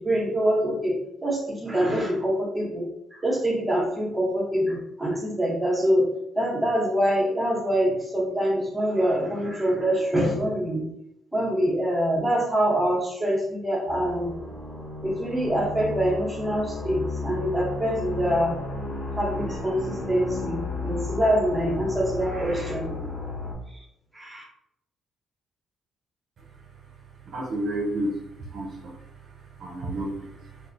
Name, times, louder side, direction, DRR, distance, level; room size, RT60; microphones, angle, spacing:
voice 1, 0.0-6.1 6.4-10.9 11.3-14.4 15.0-18.6 19.2-23.2 23.7-23.8 24.1-24.4, equal, 15° right, -1 dB, 1.0 m, -25 dB
sound 1, 13.8-23.5, left 3 dB, 75° left, 1.2 m, -34 dB
voice 2, 27.3-28.2 28.5-29.0 29.6-30.6, right 1 dB, 60° right, -1 dB, 0.6 m, -31 dB
2.5 x 2.4 x 3.8 m, 0.80 s
cardioid pair, 90°, 0 cm